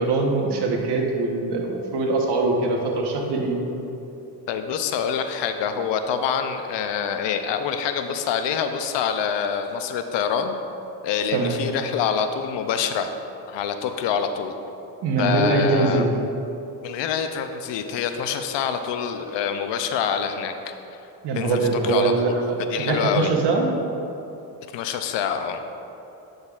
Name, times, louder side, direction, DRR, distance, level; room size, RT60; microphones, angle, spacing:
voice 1, 0.0-3.6 11.3-11.6 15.0-16.1 21.2-23.7, right 3 dB, 70° right, 1 dB, 1.1 m, -23 dB
voice 2, 4.5-10.6 11.0-13.1 13.5-14.5 15.2-16.0 16.8-21.0 21.3-22.3 22.6-23.3 24.7-25.6, left 7 dB, 85° left, 8 dB, 0.6 m, -26 dB
8.7 x 6.4 x 2.4 m, 2.9 s
cardioid pair, 90°, 42 cm